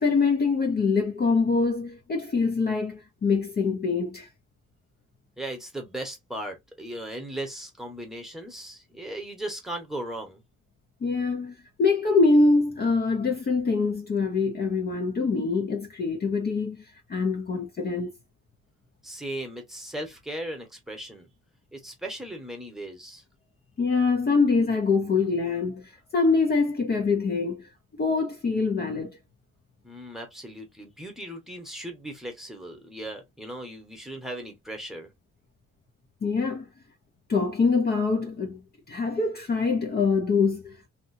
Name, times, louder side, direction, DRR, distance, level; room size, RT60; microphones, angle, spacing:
voice 1, 0.0-4.3 11.0-16.8 17.1-18.1 23.8-27.7 28.0-29.1 36.2-36.7 37.3-38.6 38.9-40.9, left 4 dB, 35° left, 0.6 m, -24 dB
voice 2, 5.4-10.4 19.0-21.3 21.7-23.2 29.8-35.1, right 1 dB, ahead, 1.0 m, -37 dB
2.8 x 2.6 x 2.6 m
cardioid pair, 135°, 30 cm